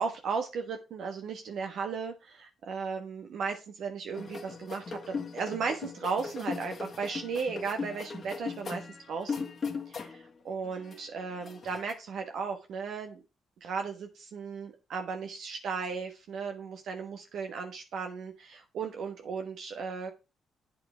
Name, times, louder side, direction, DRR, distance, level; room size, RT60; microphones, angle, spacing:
voice 1, 0.0-9.4 9.9-13.2 13.6-20.1, right 5 dB, 70° right, 4 dB, 1.3 m, -36 dB
sound 1, 4.1-10.3 10.6-11.9, left 5 dB, 45° left, 1.7 m, -38 dB
8.2 x 7.4 x 3.5 m, 0.28 s
hypercardioid pair, 50°, 0 cm